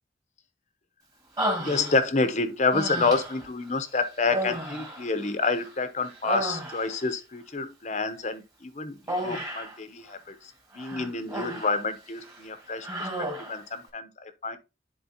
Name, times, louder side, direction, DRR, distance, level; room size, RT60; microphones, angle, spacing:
Human voice, 1.4-2.3 2.7-3.5 4.2-5.7 6.0-7.1 9.1-9.8 10.8-11.8 12.2-12.4 12.8-13.6, right 1 dB, 20° right, 2.2 m, -33 dB
voice 1, 1.6-10.3 10.7-14.6, left 3 dB, 40° left, 0.9 m, -28 dB
11.0 x 4.4 x 2.9 m
head